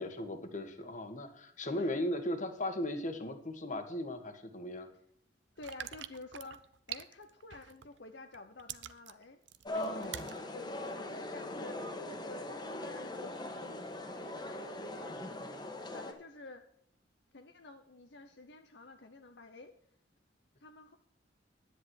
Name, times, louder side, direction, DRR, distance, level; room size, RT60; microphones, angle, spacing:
voice 1, 0.0-4.9 9.7-10.4, left 1 dB, 45° left, 7 dB, 1.7 m, -37 dB
voice 2, 5.6-6.6 6.9-9.4 9.9-10.2 10.5-10.8 11.1-11.8 12.2-13.9 14.4-15.2 15.9-16.6 17.3-19.7 20.6-21.0, left 3 dB, 70° left, 6 dB, 0.9 m, -50 dB
sound 1, 5.6-8.0 8.3-10.4 10.9-11.0, right 10 dB, 90° right, 0.7 m, -45 dB
sound 2, 9.6-16.1, left 1 dB, 25° left, 1.6 m, -41 dB
10.5 x 9.7 x 4.7 m, 0.67 s
head